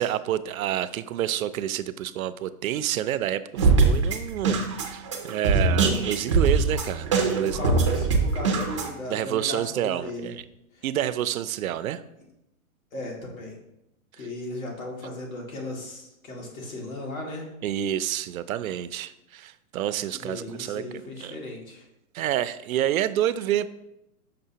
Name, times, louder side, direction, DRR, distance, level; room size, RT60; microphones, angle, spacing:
voice 1, 0.0-7.9 9.1-10.4 10.8-12.0 14.2-14.3 17.6-20.8 21.2-21.4 22.1-23.7, right 11 dB, 75° right, 14 dB, 0.5 m, -28 dB
sound 1, 3.6-8.9, right 4 dB, 25° right, 0.4 m, -22 dB
voice 2, 5.5-6.0 7.4-10.3 10.8-10.9 12.9-13.6 14.2-17.5 20.1-21.8, left 2 dB, 70° left, -1 dB, 2.0 m, -36 dB
6.7 x 5.3 x 2.8 m, 0.86 s
hypercardioid pair, 165°, 43 cm